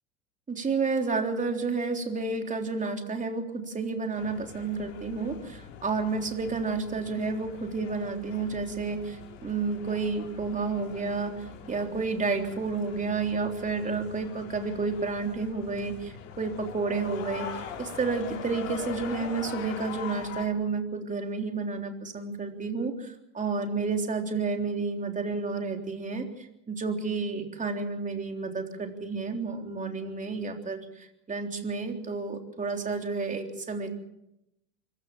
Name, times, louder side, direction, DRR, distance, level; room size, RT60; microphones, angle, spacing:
voice 1, 0.5-33.9, right 4 dB, 20° right, 4 dB, 3.6 m, -31 dB
sound 1, 4.2-20.5, left 8 dB, 85° left, 3.7 m, -43 dB
25.0 x 15.5 x 7.4 m, 0.86 s
supercardioid pair, 100°, 38 cm